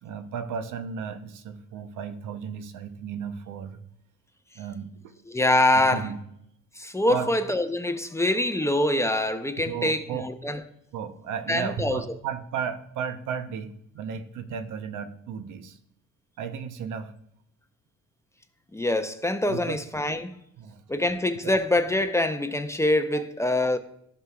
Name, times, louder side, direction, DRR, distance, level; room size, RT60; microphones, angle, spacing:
voice 1, 0.0-3.8 4.5-4.9 5.9-6.2 7.1-7.3 9.7-10.3 10.9-15.8 16.4-17.1 19.5-19.8 20.1-20.2 20.6-20.8 21.4-21.5 23.1-23.2, right 7 dB, 85° right, 0.8 m, -34 dB
voice 2, 5.3-6.1 6.8-10.6 11.5-12.0 18.7-20.4 20.9-23.8, left 1 dB, 10° left, 0.6 m, -24 dB
11.0 x 6.2 x 2.3 m
cardioid pair, 90°, 30 cm